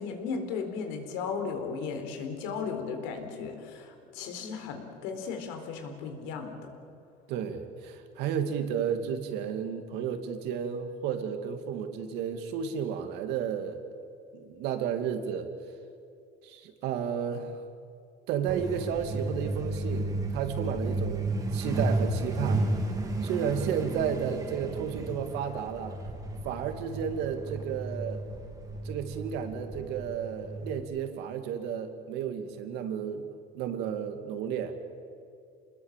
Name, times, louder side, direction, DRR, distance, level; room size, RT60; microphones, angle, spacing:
voice 1, 0.0-6.7, left 5 dB, 90° left, 6 dB, 4.2 m, -36 dB
voice 2, 7.3-13.8 14.3-15.5 16.4-17.6 18.3-22.6 23.2-26.0 26.4-28.2 28.8-33.3 33.5-34.7, right 8 dB, 65° right, 7 dB, 2.5 m, -32 dB
Truck, 18.5-30.8, right 2 dB, 20° right, 2.6 m, -33 dB
28.0 x 20.5 x 7.5 m, 2.5 s
cardioid pair, 165°, 18 cm